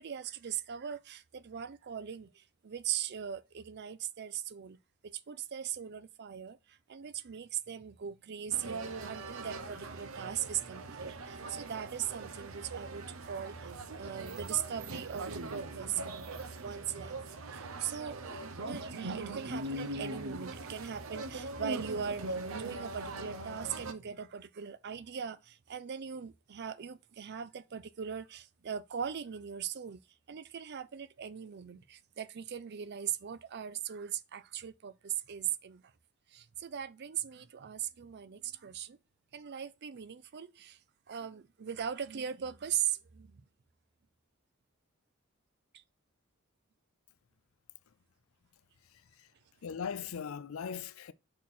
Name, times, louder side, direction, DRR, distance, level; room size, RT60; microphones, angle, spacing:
voice 1, 0.0-16.3 16.6-30.0 30.3-35.9 36.3-39.0 39.3-40.8 41.1-43.4 45.7-45.8, right 9 dB, 55° right, 0.5 m, -39 dB
sound 1, 8.5-23.9, right 2 dB, 80° right, 0.8 m, -41 dB
voice 2, 48.8-49.3 49.6-51.1, left 7 dB, 85° left, 0.5 m, -40 dB
5.7 x 4.2 x 4.2 m
head